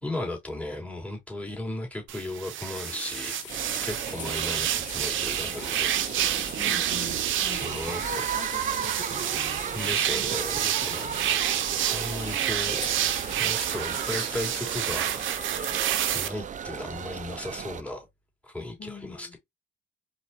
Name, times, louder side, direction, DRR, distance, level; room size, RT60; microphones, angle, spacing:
voice 1, 0.0-3.6 3.8-6.0 7.5-8.2 9.7-12.8 13.4-15.1 16.1-18.1 18.4-19.4, left 1 dB, 5° left, 3.0 m, -36 dB
sound 1, 2.1-16.3, right 11 dB, 75° right, 0.7 m, -29 dB
sound 2, 2.7-16.3, left 8 dB, 70° left, 1.4 m, -43 dB
sound 3, 3.5-17.8, right 7 dB, 40° right, 0.5 m, -35 dB
voice 2, 6.6-10.2 10.9-11.3 18.8-19.4, left 4 dB, 50° left, 1.6 m, -44 dB
4.6 x 4.2 x 2.7 m
cardioid pair, 90°, 20 cm